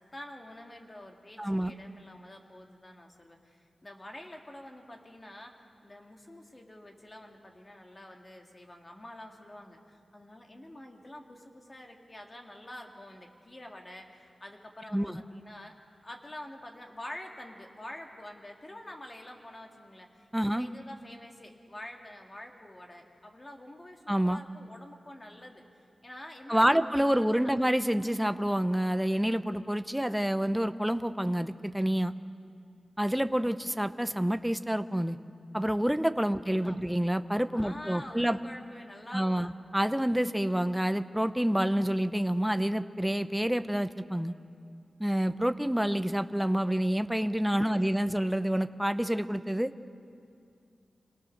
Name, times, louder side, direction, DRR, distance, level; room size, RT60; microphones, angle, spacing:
voice 1, 0.0-5.5 5.8-15.8 16.0-25.6 26.0-27.3 36.3-36.8 37.5-39.5 47.5-48.1, left 1 dB, 25° left, 2 dB, 2.0 m, -47 dB
voice 2, 1.4-1.7 14.9-15.2 20.3-20.7 24.1-24.4 26.5-32.1 33.0-35.2 35.5-38.4 39.1-44.3 45.0-49.7, equal, 5° right, 10 dB, 0.6 m, -28 dB
26.0 x 18.5 x 6.5 m, 2.5 s
wide cardioid pair, 120°, 0 cm